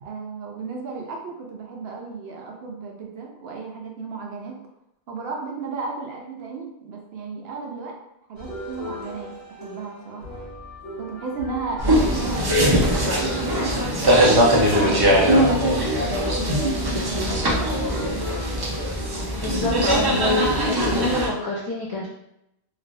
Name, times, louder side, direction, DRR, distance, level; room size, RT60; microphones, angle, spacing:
voice 1, 0.0-4.6 5.1-7.9 8.3-9.3 9.6-10.2 11.0-12.5 13.0-16.4 16.9-18.4, right 4 dB, 70° right, 0 dB, 0.8 m, -34 dB
sound 1, 8.4-19.8, equal, 85° left, 1.2 m, -37 dB
sound 2, 11.8-21.3, equal, 40° right, 0.3 m, -21 dB
voice 2, 19.4-22.1, left 2 dB, 35° left, -6 dB, 0.4 m, -27 dB
3.1 x 2.5 x 2.5 m, 0.82 s
omnidirectional pair, 1.1 m